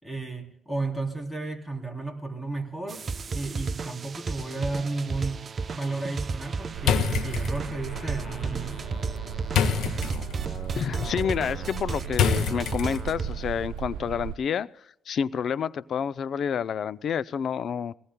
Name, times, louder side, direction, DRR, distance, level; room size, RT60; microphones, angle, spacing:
voice 1, 0.0-3.0 3.3-5.5 5.7-8.9, right 3 dB, 10° left, 2 dB, 3.3 m, -33 dB
sound 1, 2.9-13.3, right 4 dB, 40° right, 0.6 m, -34 dB
sound 2, 6.7-14.4, right 11 dB, 90° right, 0.5 m, -37 dB
sound 3, 6.8-13.3, left 7 dB, 80° left, 1.4 m, -29 dB
voice 2, 10.7-14.7 15.1-17.9, left 7 dB, 60° left, 18 dB, 0.5 m, -29 dB
22.0 x 18.5 x 2.2 m, 0.75 s
cardioid pair, 90°, 0 cm